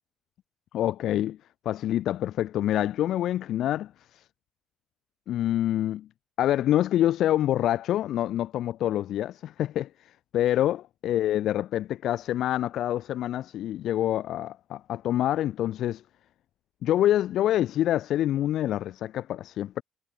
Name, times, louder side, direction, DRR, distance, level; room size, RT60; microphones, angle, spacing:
voice 1, 0.7-1.4 1.7-4.3 5.3-6.1 6.4-10.8 11.0-16.0 16.8-19.8, left 12 dB, 65° left, 0.4 m, -26 dB
cardioid pair, 90°, 0 cm